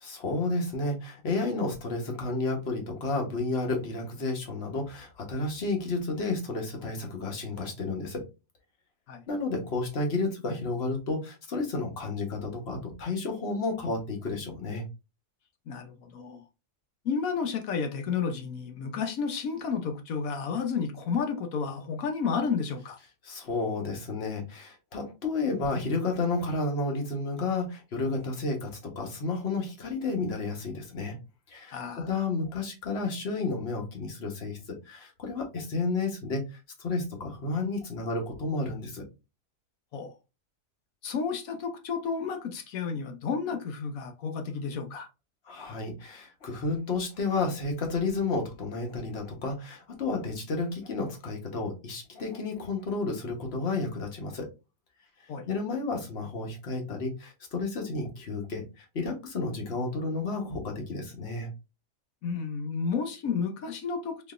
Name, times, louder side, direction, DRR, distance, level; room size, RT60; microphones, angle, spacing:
voice 1, 0.0-8.2 9.3-14.8 23.2-31.2 31.5-31.8 32.1-39.0 45.5-54.5 55.5-61.5, left 3 dB, 45° left, 1.2 m, -31 dB
voice 2, 15.7-16.4 17.0-23.0 31.7-32.1 39.9-40.1 41.0-45.1 55.3-55.5 62.2-64.3, left 5 dB, 65° left, 1.0 m, -31 dB
3.9 x 3.2 x 2.4 m
omnidirectional pair, 1.8 m